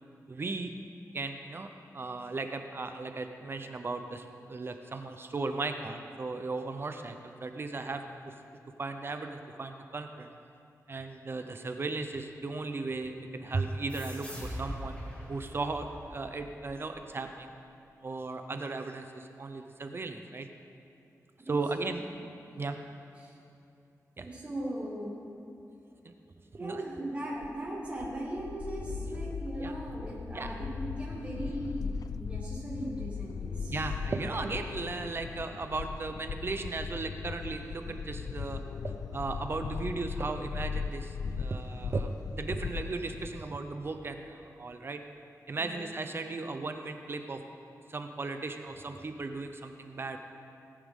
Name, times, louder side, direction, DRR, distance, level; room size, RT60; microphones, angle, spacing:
voice 1, 0.3-0.7 1.1-8.0 8.8-10.3 10.9-15.0 15.3-17.5 18.0-20.5 21.5-22.0 22.6-22.8 24.2-24.3 26.0-26.1 26.6-26.9 28.9-29.3 29.6-29.7 30.3-30.5 31.4-31.5 33.7-38.6 39.1-45.0 45.5-47.4 47.9-50.2, right 3 dB, 40° right, 6 dB, 0.6 m, -36 dB
sound 1, 13.9-17.1, equal, 20° left, 2.4 m, -42 dB
voice 2, 24.2-25.2 26.6-33.8 45.6-45.8, right 1 dB, 20° right, -6 dB, 2.3 m, -38 dB
sound 2, 27.4-43.4, left 5 dB, 85° left, 0.4 m, -38 dB
18.0 x 9.9 x 3.7 m, 2.7 s
wide cardioid pair, 150°, 6 cm